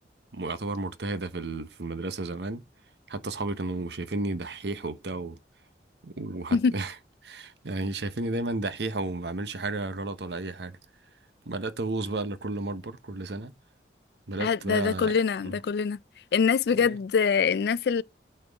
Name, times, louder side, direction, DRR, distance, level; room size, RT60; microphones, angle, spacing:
voice 1, 0.3-2.6 3.1-5.4 6.0-6.9 7.2-10.8 11.5-13.5 14.3-15.6 16.8-17.0, right 2 dB, 70° right, 0.9 m, -33 dB
voice 2, 14.4-16.0 16.3-18.0, left 6 dB, 60° left, 0.3 m, -24 dB
8.8 x 4.4 x 3.5 m
head